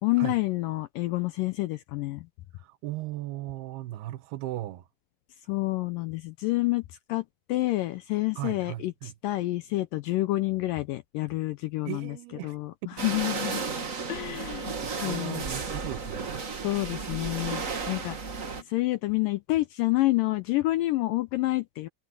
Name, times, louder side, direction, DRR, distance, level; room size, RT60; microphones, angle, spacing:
voice 1, 0.0-2.3 5.5-6.8 7.1-12.1 12.4-12.7 13.0-13.6 14.1-14.8 15.0-15.4 16.6-18.2 18.7-21.9, left 19 dB, 85° left, 2.0 m, -28 dB
voice 2, 2.5-4.9 8.4-9.1 11.8-12.6 14.8-16.4, right 15 dB, 85° right, 2.9 m, -37 dB
sound 1, 13.0-18.6, right 4 dB, 60° right, 0.8 m, -34 dB
omnidirectional pair, 4.5 m